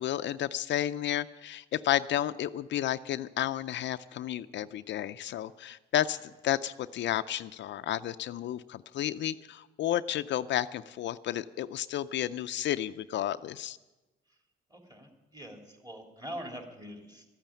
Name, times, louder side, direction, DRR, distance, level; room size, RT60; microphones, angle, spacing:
voice 1, 0.0-13.8, left 12 dB, 65° left, 12 dB, 0.5 m, -32 dB
voice 2, 14.7-17.2, equal, 20° right, 2 dB, 3.2 m, -43 dB
13.0 x 9.1 x 8.9 m, 1.1 s
cardioid pair, 90°, 20 cm